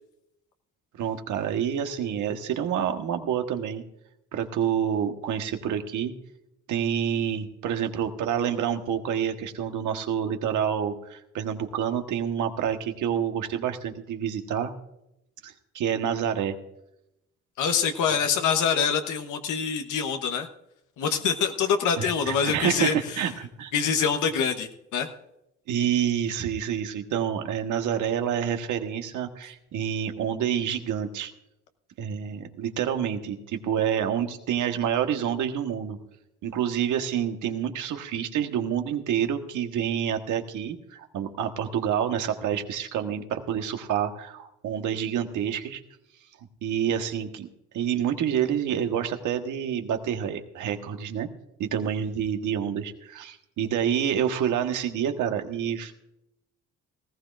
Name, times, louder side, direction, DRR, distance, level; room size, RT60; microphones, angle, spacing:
voice 1, 1.0-3.8 4.3-6.1 6.7-14.7 15.4-16.5 22.0-23.7 25.7-31.3 32.0-36.0 36.4-45.8 46.6-47.5 47.7-51.3 51.6-55.9, right 9 dB, 80° right, 5 dB, 1.4 m, -28 dB
voice 2, 17.6-20.5 21.0-23.2 23.7-25.1, left 6 dB, 80° left, 6 dB, 1.1 m, -25 dB
19.0 x 15.0 x 2.5 m, 0.83 s
cardioid pair, 90°, 30 cm